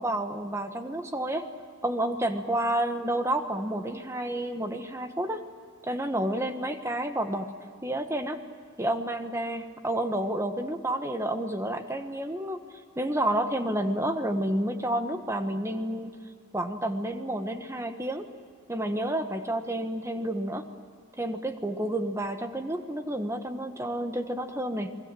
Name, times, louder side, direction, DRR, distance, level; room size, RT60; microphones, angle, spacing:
voice 1, 0.0-1.5 1.8-5.4 5.8-7.5 7.8-8.4 8.8-12.6 13.0-16.2 16.5-18.3 18.7-20.7 21.2-24.9, right 1 dB, 15° right, 7 dB, 1.4 m, -30 dB
28.5 x 21.5 x 7.7 m, 2.1 s
head